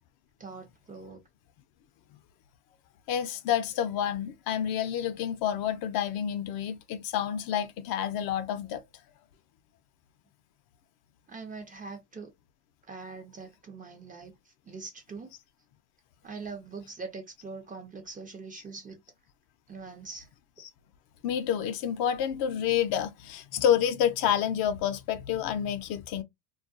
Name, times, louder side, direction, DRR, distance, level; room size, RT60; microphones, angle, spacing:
voice 1, 0.4-1.2 11.3-12.3 12.8-15.3 16.2-19.0 19.7-20.3, right 4 dB, 20° right, 0.4 m, -43 dB
voice 2, 3.1-8.8 21.2-26.2, left 9 dB, 50° left, 0.5 m, -29 dB
2.3 x 2.2 x 2.6 m
supercardioid pair, 100°, 46 cm